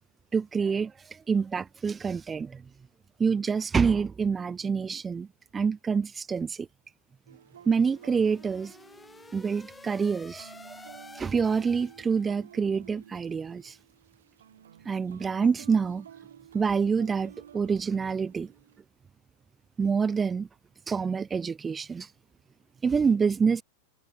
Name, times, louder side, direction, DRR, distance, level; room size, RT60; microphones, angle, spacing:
voice 1, 0.3-0.9 1.3-2.6 3.2-5.3 5.5-6.7 7.7-8.7 9.3-10.5 11.1-13.7 14.8-16.1 16.5-18.5 19.8-20.5 20.9-22.1 22.8-23.6, right 5 dB, 15° right, 1.0 m, -26 dB
sound 1, 7.3-18.8, right 9 dB, 65° right, 7.1 m, -52 dB
sound 2, 7.4-12.4, left 3 dB, 10° left, 3.3 m, -51 dB
figure-of-eight pair, 90°, 0 cm